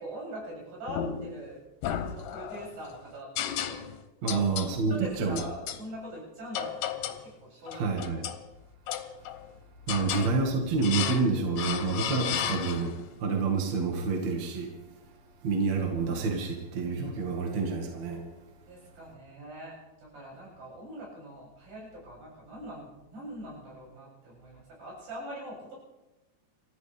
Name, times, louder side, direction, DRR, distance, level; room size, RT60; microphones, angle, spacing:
voice 1, 0.0-1.6 1.9-3.9 4.2-4.5 4.9-7.9 9.9-10.1 18.7-25.7, right 1 dB, 70° right, -4 dB, 9.5 m, -43 dB
sound 1, 0.9-1.4 1.8-2.7 3.4-4.0 4.3-4.7 5.4-5.8 6.5-7.3 7.7-8.4 8.9-9.5 9.9-10.3 10.8-11.3 11.6-13.0, left 9 dB, 75° left, 2.8 m, -34 dB
voice 2, 4.2-5.4 7.7-8.2 9.9-14.7 15.4-18.2, right 4 dB, 50° right, 1 dB, 2.7 m, -28 dB
29.5 x 14.0 x 3.5 m, 1.0 s
omnidirectional pair, 4.8 m